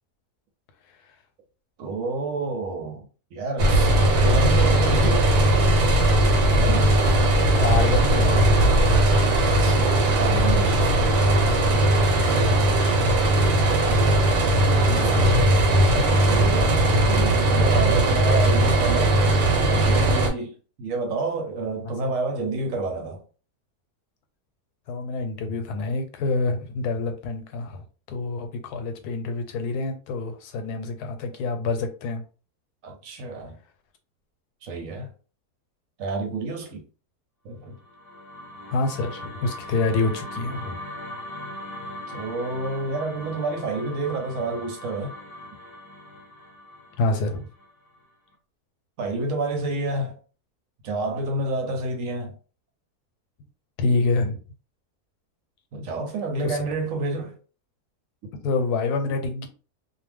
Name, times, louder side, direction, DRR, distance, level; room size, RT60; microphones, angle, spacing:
voice 1, 1.8-5.3 6.6-6.9 9.3-13.3 16.0-19.2 19.6-23.2 32.8-33.6 34.6-35.1 36.0-36.8 37.4-37.8 42.1-45.2 49.0-50.2 50.8-52.4 55.7-57.4, right 2 dB, 65° right, 0.9 m, -29 dB
sound 1, 3.6-20.3, right 1 dB, 85° right, 1.3 m, -19 dB
voice 2, 7.2-8.8 14.7-15.4 15.9-16.1 22.0-22.1 24.9-32.2 38.7-40.8 47.0-47.5 53.8-54.4 56.4-56.6 58.4-59.5, left 3 dB, 90° left, 1.2 m, -27 dB
sound 2, 37.7-48.0, left 1 dB, 45° left, 0.8 m, -39 dB
2.6 x 2.1 x 3.3 m
omnidirectional pair, 1.7 m